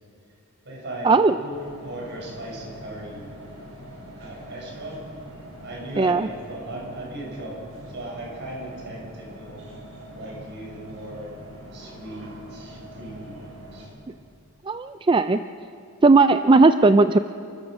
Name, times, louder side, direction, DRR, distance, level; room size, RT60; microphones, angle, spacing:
voice 1, 0.6-3.3 4.2-5.0 5.6-9.6 10.1-11.3 11.7-13.9, right 1 dB, 55° right, -2 dB, 6.6 m, -37 dB
sound 1, 1.5-13.9, right 1 dB, 75° right, 6.7 m, -43 dB
voice 2, 14.7-15.4 16.0-17.2, right 3 dB, 25° right, 10 dB, 0.4 m, -16 dB
30.0 x 14.0 x 6.5 m, 2.6 s
head